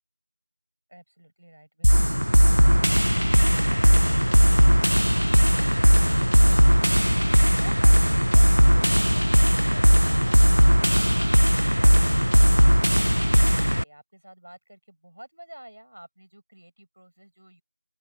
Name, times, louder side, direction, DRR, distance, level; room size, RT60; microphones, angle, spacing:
voice 1, 0.9-17.6, right 1 dB, 15° right, 6.6 m, -49 dB
sound 1, 1.8-13.8, equal, 70° right, 0.5 m, -18 dB
open air
figure-of-eight pair, 180°, 0 cm